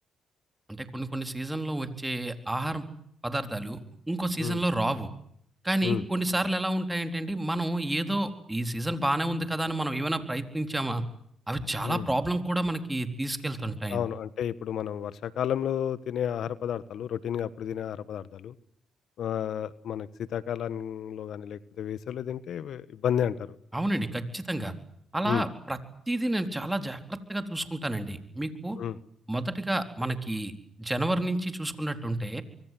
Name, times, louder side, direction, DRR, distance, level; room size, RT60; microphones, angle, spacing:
voice 1, 0.7-2.8 3.2-3.8 4.1-5.1 5.6-11.0 11.5-14.0 23.7-24.7 25.1-25.8 26.1-28.8 29.3-30.5 30.8-32.4, right 1 dB, 10° right, 7 dB, 4.1 m, -30 dB
voice 2, 13.9-18.5 19.2-23.5 25.2-25.5 28.8-29.0, left 9 dB, 70° left, 16 dB, 1.4 m, -31 dB
26.0 x 24.0 x 7.8 m, 0.67 s
supercardioid pair, 60°, 0 cm